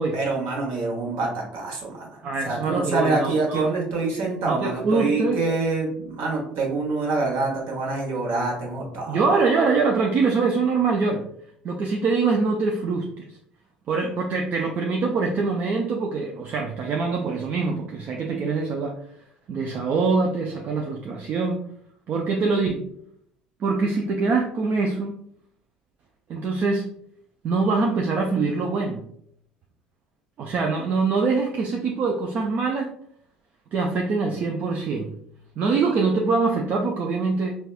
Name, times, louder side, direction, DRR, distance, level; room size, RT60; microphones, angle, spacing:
voice 1, 0.1-9.2, right 3 dB, 65° right, -1 dB, 1.1 m, -26 dB
voice 2, 2.2-3.7 4.5-5.4 9.1-11.2 11.6-13.3 13.9-19.0 19.5-21.6 22.1-22.8 23.6-25.1 26.3-26.9 27.4-29.0 30.4-32.9 33.7-35.1 35.6-37.5, right 4 dB, 45° right, 1 dB, 0.4 m, -24 dB
4.0 x 2.2 x 2.4 m, 0.69 s
hypercardioid pair, 60°, 4 cm